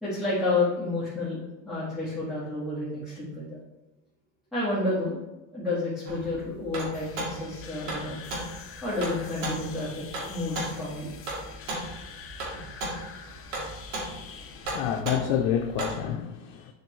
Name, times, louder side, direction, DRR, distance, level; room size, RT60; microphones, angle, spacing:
voice 1, 0.0-3.6 4.5-5.2 5.5-8.2 8.8-9.9 10.2-11.1, left 2 dB, ahead, -12 dB, 1.8 m, -30 dB
sound 1, 6.0-16.0, right 1 dB, 60° right, 2.2 m, -36 dB
sound 2, 6.9-15.0, left 7 dB, 35° left, 0.7 m, -46 dB
voice 2, 14.7-16.7, left 9 dB, 75° left, 4 dB, 0.6 m, -28 dB
7.2 x 4.6 x 3.2 m, 1.0 s
cardioid pair, 130°, 37 cm